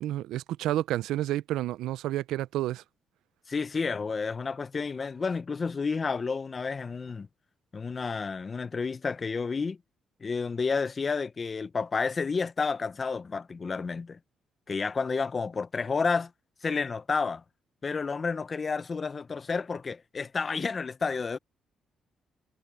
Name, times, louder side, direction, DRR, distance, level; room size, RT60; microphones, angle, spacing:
voice 1, 0.0-2.8, right 14 dB, 90° right, 0.5 m, -30 dB
voice 2, 3.5-7.3 7.7-9.8 10.2-14.2 14.7-16.3 16.6-17.4 17.8-21.4, left 4 dB, 35° left, 0.6 m, -30 dB
cardioid pair, 90°, 0 cm